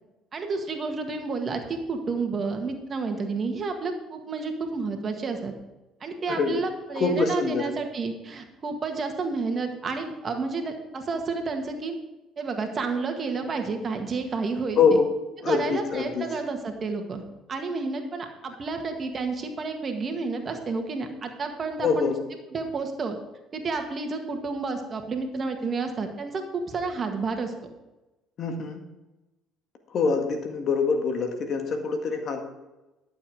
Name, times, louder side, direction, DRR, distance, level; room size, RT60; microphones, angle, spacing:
voice 1, 0.3-5.5 6.0-12.0 12.4-15.0 15.5-17.2 17.5-22.1 22.5-23.2 23.5-27.5, right 4 dB, 40° right, 4 dB, 1.9 m, -30 dB
voice 2, 6.3-6.6 6.9-7.7 14.7-15.1 15.4-16.3 21.8-22.1 28.4-28.9 29.9-32.4, left 5 dB, 55° left, 5 dB, 1.8 m, -24 dB
11.5 x 7.2 x 4.9 m, 1.0 s
supercardioid pair, 70°, 0 cm